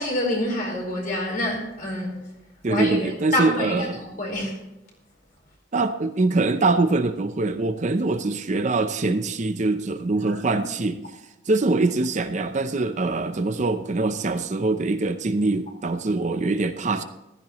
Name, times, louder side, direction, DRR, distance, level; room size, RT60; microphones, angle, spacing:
voice 1, 0.0-2.2 2.7-4.5 10.2-10.9, left 1 dB, 50° left, -1 dB, 4.4 m, -27 dB
voice 2, 2.6-4.0 5.7-11.0 11.5-17.0, right 3 dB, 40° right, 9 dB, 0.6 m, -23 dB
15.0 x 13.5 x 3.1 m, 0.95 s
head